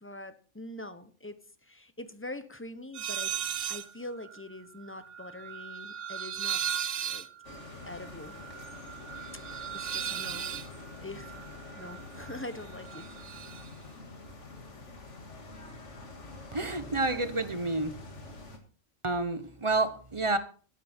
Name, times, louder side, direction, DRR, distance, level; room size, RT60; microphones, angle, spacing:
voice 1, 0.0-3.3 3.7-7.3 7.9-8.4 9.7-10.5 11.0-11.4 11.8-13.1, left 1 dB, 10° left, 11 dB, 0.8 m, -43 dB
sound 1, 2.9-3.9 4.2-12.4 12.7-13.7, right 9 dB, 70° right, 1.1 m, -37 dB
sound 2, 7.4-18.6, left 3 dB, 65° left, 2.3 m, -46 dB
voice 2, 16.5-18.0 19.0-20.4, right 2 dB, 25° right, 11 dB, 1.0 m, -29 dB
12.5 x 11.5 x 4.4 m, 0.40 s
omnidirectional pair, 1.3 m